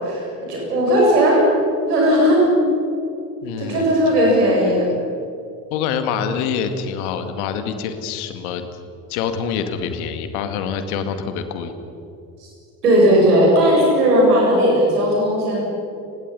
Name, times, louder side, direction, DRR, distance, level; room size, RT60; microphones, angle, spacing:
voice 1, 0.0-1.4 1.9-2.4 3.6-4.9 12.8-15.6, equal, 80° right, -2 dB, 7.6 m, -16 dB
voice 2, 3.4-3.9 5.7-8.6 9.1-11.7, left 7 dB, 65° left, 8 dB, 2.2 m, -25 dB
29.5 x 21.0 x 5.6 m, 2.7 s
figure-of-eight pair, 55°, 46 cm